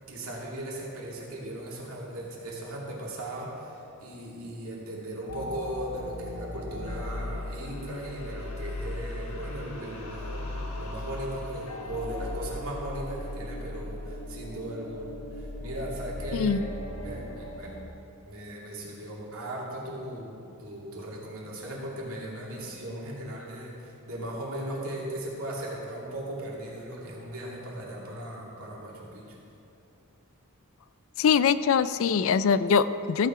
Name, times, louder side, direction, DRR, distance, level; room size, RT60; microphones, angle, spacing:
voice 1, 0.1-16.6 17.0-17.7 18.3-29.3, right 1 dB, 70° right, -4 dB, 2.4 m, -38 dB
sound 1, 5.3-17.8, left 1 dB, 85° left, 1.1 m, -37 dB
voice 2, 31.2-33.3, left 6 dB, 65° left, 15 dB, 0.3 m, -23 dB
14.0 x 6.7 x 4.8 m, 2.8 s
head